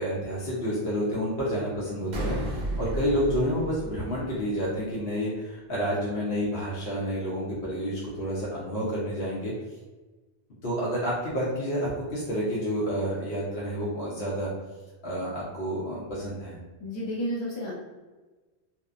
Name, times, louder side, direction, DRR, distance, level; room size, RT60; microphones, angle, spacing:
voice 1, 0.0-9.5 10.6-14.5 15.0-16.6, equal, 65° left, -7 dB, 0.9 m, -29 dB
voice 2, 2.0-2.5 16.8-17.7, equal, 35° left, -6 dB, 0.4 m, -33 dB
sound 1, 2.1-4.7, right 1 dB, 50° right, 0.6 m, -33 dB
2.9 x 2.1 x 2.4 m, 1.2 s
omnidirectional pair, 1.1 m